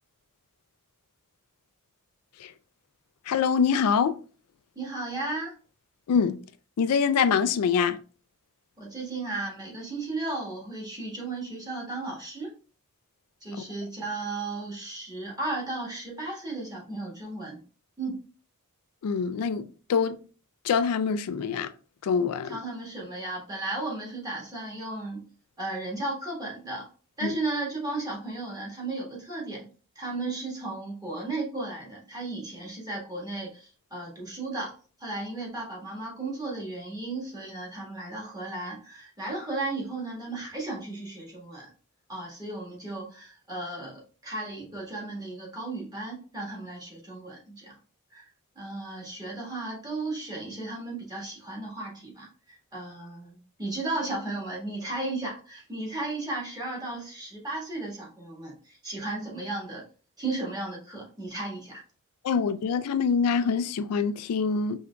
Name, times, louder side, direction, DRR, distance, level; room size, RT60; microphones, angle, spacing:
voice 1, 3.3-4.2 6.1-6.4 6.8-8.0 19.0-20.2 20.6-21.7 22.0-22.6 27.2-27.4 62.2-64.8, left 6 dB, 80° left, 0.4 m, -25 dB
voice 2, 4.7-5.5 8.8-12.5 13.4-17.6 18.0-18.2 22.4-25.3 25.6-26.9 27.2-29.7 29.9-34.7 35.0-41.7 42.1-47.8 48.1-48.3 48.5-59.9 60.2-61.8, right 2 dB, 20° right, 1.5 m, -35 dB
5.1 x 3.5 x 2.2 m
head